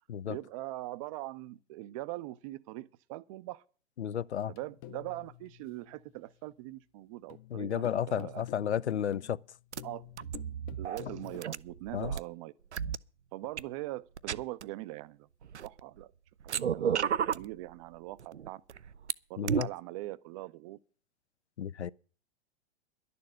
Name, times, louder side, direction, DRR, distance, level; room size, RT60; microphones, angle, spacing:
voice 1, 0.2-3.6 4.5-8.4 9.8-10.1 10.8-12.5 13.3-15.3 15.6-16.1 16.4-18.6 19.3-20.8, right 17 dB, 30° right, 0.5 m, -42 dB
voice 2, 4.0-4.5 7.5-9.4 11.9-12.1 19.4-19.7 21.6-21.9, left 9 dB, 80° left, 0.5 m, -32 dB
sound 1, 4.4-6.3 7.3-11.4, left 14 dB, 30° left, 0.6 m, -50 dB
sound 2, 9.7-9.8 10.2-12.2 12.7-13.0 13.6-13.7 14.2-14.6 15.4-16.0 16.4-17.5 18.2-19.1 19.5-19.6, right 8 dB, 80° right, 0.5 m, -33 dB
11.5 x 6.9 x 9.6 m
figure-of-eight pair, 100°, 33 cm